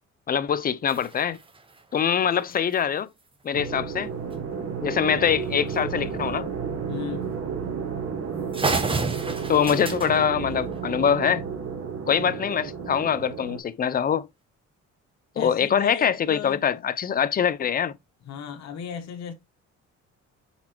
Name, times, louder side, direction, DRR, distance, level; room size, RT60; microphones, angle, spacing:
voice 1, 0.3-1.4 1.9-3.1 3.4-4.1 4.8-6.5 9.5-11.4 12.1-14.3 15.4-17.9, left 8 dB, 30° left, 0.4 m, -23 dB
sound 1, 0.9-2.8 4.3-4.4 4.8-4.9 5.3-5.4 6.3-6.5 7.2-7.4 7.8-7.9 8.2-8.3 8.5-11.2, right 3 dB, 15° right, 0.8 m, -32 dB
Big Noise Drone, 3.5-13.6, right 6 dB, 55° right, 1.1 m, -32 dB
voice 2, 6.9-7.3 15.3-16.7 18.2-19.3, left 7 dB, 60° left, 1.0 m, -36 dB
4.2 x 4.1 x 2.9 m
cardioid pair, 90°, 30 cm